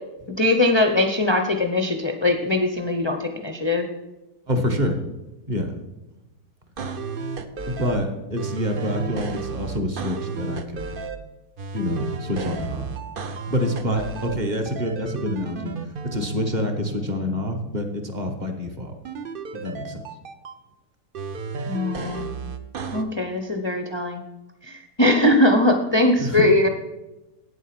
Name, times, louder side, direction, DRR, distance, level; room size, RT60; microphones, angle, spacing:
voice 1, 0.4-3.9 21.7-22.3 22.9-24.2 24.7-26.7, left 1 dB, 35° left, 4 dB, 0.4 m, -21 dB
voice 2, 4.5-5.0 5.5-5.7 7.7-10.9 11.7-12.9 13.5-15.7 16.1-18.9 19.5-20.0 26.2-26.5, equal, 30° right, 4 dB, 1.2 m, -27 dB
sound 1, 6.8-8.0 8.4-11.2 11.6-14.4 14.7-17.6 19.0-20.5 21.1-23.0, right 4 dB, 55° right, 0.6 m, -33 dB
9.1 x 8.1 x 5.9 m, 1.0 s
omnidirectional pair, 1.8 m